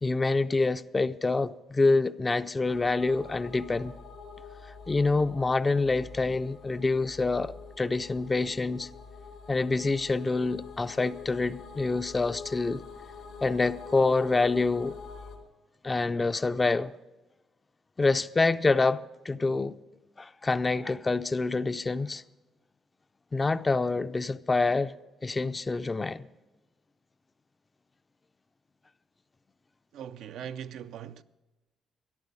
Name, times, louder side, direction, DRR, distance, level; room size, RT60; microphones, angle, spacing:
voice 1, 0.0-3.9 4.9-8.9 9.5-12.8 13.4-15.0 15.8-16.9 18.0-19.7 20.2-22.2 23.3-24.9 25.2-26.3, left 3 dB, 25° left, 0.4 m, -26 dB
sound 1, 2.6-15.4, left 5 dB, 75° left, 2.9 m, -46 dB
voice 2, 29.9-31.2, right 9 dB, 80° right, 0.4 m, -40 dB
13.5 x 11.0 x 5.2 m
cardioid pair, 90°, 0 cm